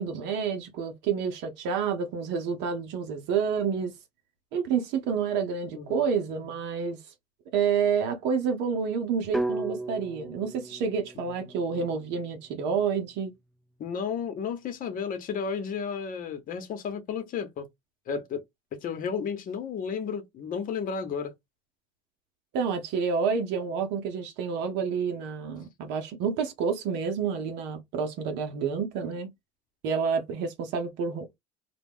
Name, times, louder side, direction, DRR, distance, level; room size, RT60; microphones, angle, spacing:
voice 1, 0.0-3.9 4.5-7.0 7.5-13.3 22.5-29.3 29.8-31.3, right 6 dB, 70° right, 0.7 m, -29 dB
sound 1, 9.3-13.4, right 2 dB, ahead, 0.5 m, -36 dB
voice 2, 13.8-17.7 18.1-18.4 18.7-21.3, left 6 dB, 50° left, 0.8 m, -33 dB
2.2 x 2.1 x 3.4 m
supercardioid pair, 80°, 18 cm